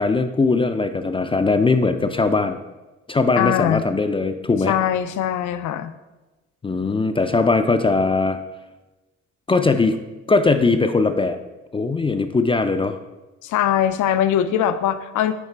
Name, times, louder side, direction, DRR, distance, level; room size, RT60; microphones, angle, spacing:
voice 1, 0.0-2.6 3.1-4.7 6.6-8.4 9.5-10.0 10.3-11.4 11.7-13.0, left 3 dB, 20° left, 8 dB, 0.3 m, -20 dB
voice 2, 3.4-3.8 4.7-5.9 13.4-15.3, left 10 dB, 75° left, 11 dB, 0.5 m, -21 dB
9.3 x 3.2 x 4.4 m, 1.1 s
cardioid pair, 90°, 30 cm